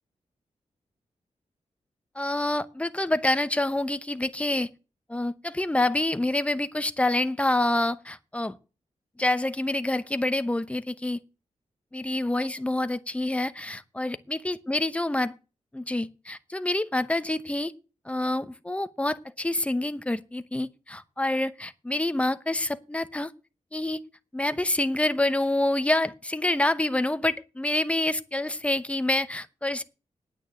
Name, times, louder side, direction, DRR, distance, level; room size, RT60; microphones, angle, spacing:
voice 1, 2.1-4.7 5.1-8.6 9.2-11.2 11.9-15.4 15.7-17.7 18.0-23.3 23.7-24.0 24.3-29.8, left 1 dB, 10° left, 0.9 m, -27 dB
9.1 x 9.1 x 9.1 m
wide cardioid pair, 140°, 13 cm